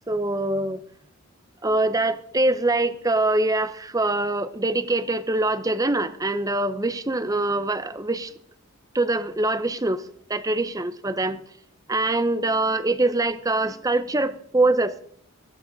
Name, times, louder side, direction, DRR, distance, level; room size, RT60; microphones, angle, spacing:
voice 1, 0.1-0.8 1.6-8.3 8.9-10.0 10.3-11.4 11.9-15.0, right 2 dB, 15° right, 13 dB, 0.6 m, -24 dB
15.5 x 14.5 x 4.0 m, 0.64 s
head